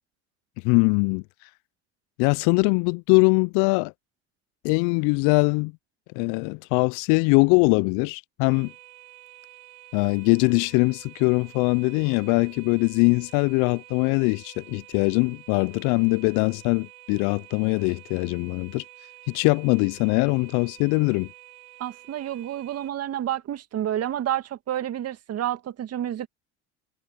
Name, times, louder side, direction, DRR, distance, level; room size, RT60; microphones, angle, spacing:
voice 1, 0.6-1.2 2.2-3.9 4.6-5.7 6.1-8.7 9.9-18.8 19.3-21.3, left 32 dB, 60° left, 0.5 m, -22 dB
sound 1, 8.5-22.9, right 19 dB, 80° right, 4.1 m, -49 dB
voice 2, 21.8-26.3, right 11 dB, 45° right, 1.9 m, -29 dB
hypercardioid pair, 70°, 35 cm